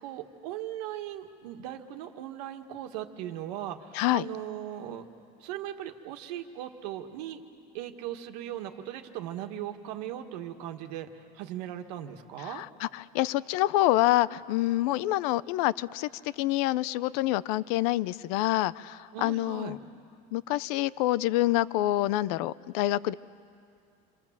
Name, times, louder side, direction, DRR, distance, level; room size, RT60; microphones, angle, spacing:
voice 1, 0.0-5.0 5.4-7.4 7.7-11.1 11.3-12.6 19.1-19.8, right 11 dB, 80° right, 6 dB, 1.7 m, -38 dB
voice 2, 12.5-16.1 16.4-19.8 20.3-23.1, left 16 dB, 70° left, 19 dB, 0.6 m, -27 dB
28.0 x 26.5 x 7.4 m, 2.4 s
cardioid pair, 170°, 20 cm